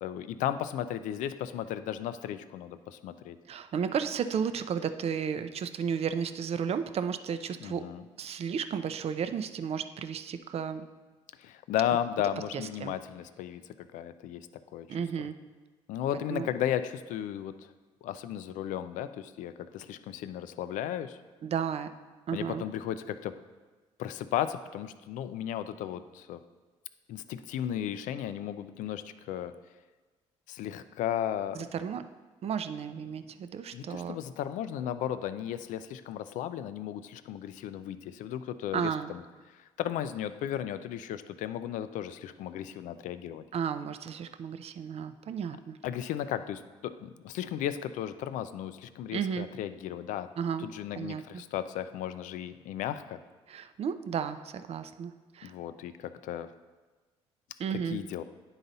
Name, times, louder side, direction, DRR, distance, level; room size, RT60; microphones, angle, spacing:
voice 1, 0.0-3.4 7.6-8.0 11.4-14.5 14.7-14.9 15.2-15.3 15.9-17.7 18.0-21.2 22.3-23.4 24.0-26.4 27.1-29.5 30.5-31.7 33.7-39.2 39.5-43.4 45.8-50.3 50.6-53.2 55.4-56.5 57.7-58.2, left 10 dB, 75° left, 12 dB, 0.4 m, -35 dB
voice 2, 3.5-7.8 8.2-10.9 12.5-12.9 14.9-15.4 16.3-16.5 21.4-21.9 22.3-22.6 31.5-32.0 32.4-34.2 38.7-39.1 43.5-45.8 49.1-49.5 50.4-50.6 50.9-51.4 53.5-55.5 57.6-58.0, right 7 dB, 50° right, 10 dB, 0.5 m, -33 dB
9.9 x 3.9 x 4.0 m, 1.3 s
supercardioid pair, 65°, 13 cm